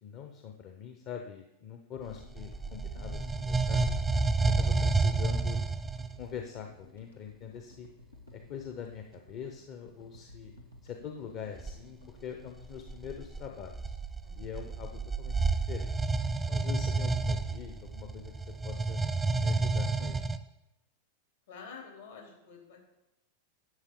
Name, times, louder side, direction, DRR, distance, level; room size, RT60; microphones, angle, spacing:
voice 1, 0.0-3.9 4.6-5.6 6.2-7.9 8.3-10.5 10.8-13.9 14.3-15.9 16.5-18.3 18.6-19.0 19.4-20.3, left 8 dB, 45° left, 4 dB, 0.9 m, -43 dB
sound 1, 1.9-14.3, left 2 dB, 90° left, 1.3 m, -56 dB
sound 2, 2.1-6.2 11.6-11.8 12.6-20.4, right 3 dB, 10° right, 0.5 m, -30 dB
voice 2, 21.5-22.8, left 5 dB, 70° left, 0 dB, 3.2 m, -48 dB
11.0 x 7.3 x 3.8 m, 0.91 s
figure-of-eight pair, 90°, 0 cm